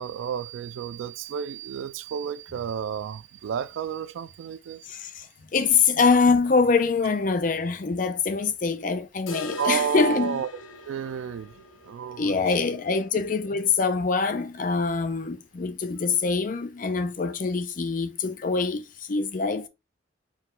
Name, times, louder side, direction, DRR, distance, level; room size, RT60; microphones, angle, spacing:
voice 1, 0.0-4.9 9.6-10.5 10.9-11.5 11.8-12.4 12.9-13.0, right 7 dB, 85° right, 0.3 m, -31 dB
voice 2, 4.9-5.3 5.5-10.4 12.2-19.7, left 4 dB, 45° left, 0.5 m, -24 dB
sound 1, 9.3-15.1 15.4-15.5 15.8-15.9 16.4-16.5 17.4-17.5, left 3 dB, 90° left, 0.7 m, -42 dB
4.3 x 2.2 x 3.8 m
head